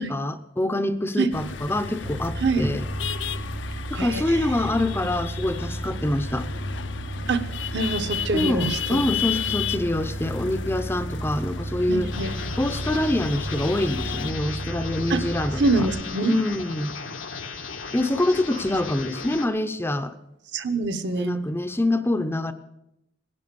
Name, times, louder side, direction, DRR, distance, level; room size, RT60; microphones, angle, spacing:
voice 1, 0.0-2.8 3.9-6.5 8.3-12.1 12.6-15.9 16.2-16.9 17.9-20.2 21.2-22.5, left 1 dB, 10° left, 9 dB, 0.6 m, -25 dB
sound 1, 1.3-14.3, left 7 dB, 70° left, 0.7 m, -34 dB
sound 2, 2.0-16.0, right 1 dB, 45° right, 0.7 m, -33 dB
voice 2, 3.9-4.5 7.3-7.5 7.7-9.0 11.9-12.3 15.1-15.2 15.6-16.4 20.5-21.4, right 3 dB, 60° right, 8 dB, 1.2 m, -25 dB
sound 3, 12.1-19.5, left 4 dB, 90° left, 1.6 m, -36 dB
18.5 x 11.0 x 6.9 m, 0.86 s
head